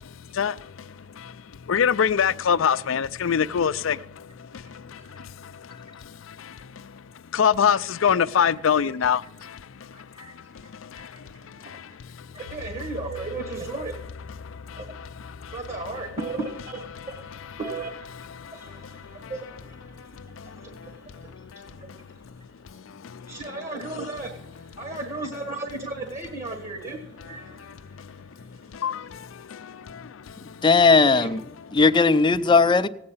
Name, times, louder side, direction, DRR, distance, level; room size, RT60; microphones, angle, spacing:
voice 1, 0.0-7.0 7.3-12.3 14.4-15.6 18.4-19.3 20.0-22.1 22.6-23.4 27.6-30.6, left 7 dB, 80° left, 0.5 m, -28 dB
voice 2, 4.6-5.3 5.8-5.9 8.7-8.9 9.2-9.5 9.9-12.0 12.3-14.0 14.7-22.8 23.1-29.1 30.5-30.6 31.0-31.3, right 3 dB, 35° right, 1.5 m, -37 dB
sound 1, 12.4-21.8 22.2-22.3, left 3 dB, 65° right, 1.4 m, -46 dB
voice 3, 30.6-31.4 31.7-32.9, left 4 dB, 25° left, 0.5 m, -17 dB
16.5 x 8.7 x 5.6 m
head